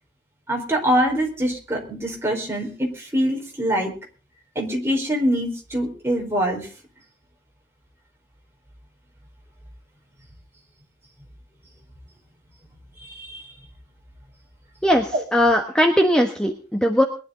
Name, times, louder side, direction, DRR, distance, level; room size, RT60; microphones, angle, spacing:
voice 1, 0.5-3.9 4.5-6.7 13.1-13.4, equal, 15° right, -1 dB, 4.5 m, -24 dB
voice 2, 14.8-17.0, equal, 5° left, 3 dB, 1.3 m, -19 dB
22.0 x 11.0 x 3.9 m, 0.37 s
head